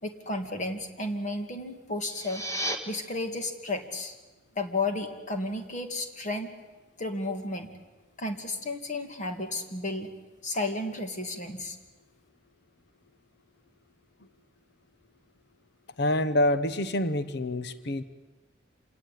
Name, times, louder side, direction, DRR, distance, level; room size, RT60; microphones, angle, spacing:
voice 1, 0.0-2.4 2.9-4.2 4.5-6.5 7.0-7.7 8.2-10.1 10.4-11.8, left 2 dB, 40° left, 5 dB, 2.5 m, -33 dB
sound 1, 1.9-2.8, right 1 dB, 15° left, 2.0 m, -33 dB
voice 2, 16.0-18.0, left 1 dB, 60° left, 13 dB, 1.0 m, -26 dB
27.0 x 18.5 x 9.4 m, 1.2 s
head